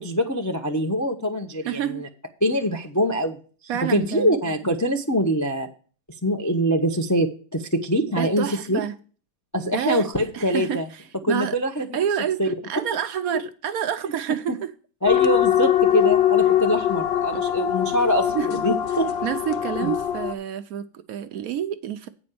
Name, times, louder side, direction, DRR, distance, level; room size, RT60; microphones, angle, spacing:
voice 1, 0.0-2.1 2.4-3.4 3.9-5.7 6.2-8.8 9.5-10.9 11.2-11.9 12.4-12.5 15.0-18.3 18.6-19.1 19.8-19.9, equal, 25° left, 0.4 m, -24 dB
voice 2, 1.6-2.1 3.7-4.3 8.1-8.9 9.6-10.1 10.3-11.6 11.9-14.7 17.3-17.7 18.3-18.8 19.2-22.1, right 10 dB, 70° right, 0.9 m, -28 dB
sound 1, 15.1-20.3, left 11 dB, 70° left, 0.6 m, -22 dB
8.6 x 5.2 x 6.7 m
omnidirectional pair, 1.8 m